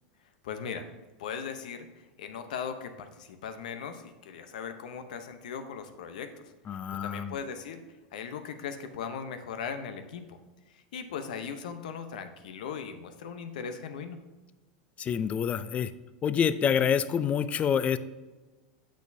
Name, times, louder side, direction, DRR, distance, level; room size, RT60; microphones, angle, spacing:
voice 1, 0.4-0.9 1.2-6.5 6.9-7.8 8.1-10.4 10.7-14.2, left 6 dB, 75° left, 9 dB, 0.8 m, -39 dB
voice 2, 6.7-7.4 15.0-15.9 16.2-18.0, left 8 dB, 30° left, 15 dB, 0.4 m, -27 dB
8.3 x 6.2 x 2.7 m, 1.2 s
hypercardioid pair, 100°, 4 cm